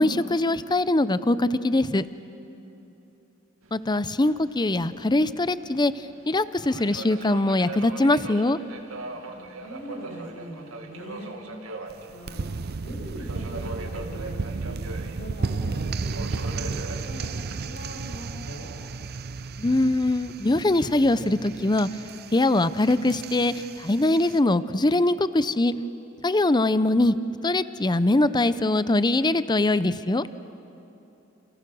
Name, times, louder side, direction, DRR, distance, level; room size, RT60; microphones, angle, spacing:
voice 1, 0.0-2.0 3.7-5.9 6.3-8.6 19.6-21.9 22.3-25.7 26.2-27.2 27.4-30.3, left 2 dB, 20° left, 14 dB, 0.6 m, -22 dB
voice 2, 2.4-2.9 9.0-11.3 12.1-12.5 12.8-14.8 15.0-17.3 17.6-18.7, equal, 65° left, -1 dB, 7.6 m, -41 dB
Subway metro underground, 3.6-22.1, right 2 dB, 90° right, 2.2 m, -42 dB
sound 1, 11.9-24.4, right 4 dB, 50° right, 0.6 m, -34 dB
29.5 x 29.0 x 6.2 m, 2.8 s
head